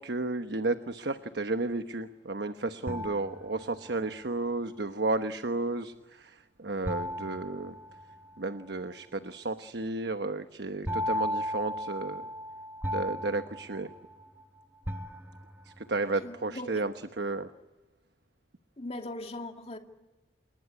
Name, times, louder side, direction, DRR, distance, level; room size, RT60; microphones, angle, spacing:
voice 1, 0.0-7.8 8.4-12.3 12.9-13.9 15.8-17.5, right 2 dB, 70° right, 9 dB, 1.1 m, -33 dB
sound 1, 2.9-4.1 6.9-8.5 10.9-14.4 14.9-15.8, left 1 dB, 10° right, 1.1 m, -36 dB
voice 2, 16.1-16.8 18.8-19.8, left 2 dB, 35° left, 4 dB, 2.6 m, -40 dB
28.5 x 21.5 x 9.7 m, 1.2 s
head